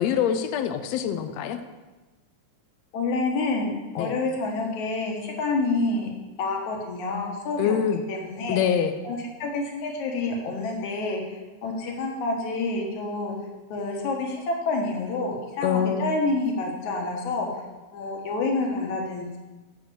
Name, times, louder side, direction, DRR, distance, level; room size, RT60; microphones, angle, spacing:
voice 1, 0.0-1.6 4.0-4.1 7.6-8.0 8.5-9.0 15.6-16.1, left 8 dB, 85° left, 8 dB, 1.5 m, -24 dB
voice 2, 2.9-6.1 6.4-7.8 8.1-8.6 9.0-11.2 11.6-13.4 13.7-17.5 17.9-19.4, left 3 dB, 65° left, 1 dB, 2.7 m, -28 dB
7.4 x 6.0 x 7.6 m, 1.2 s
omnidirectional pair, 3.8 m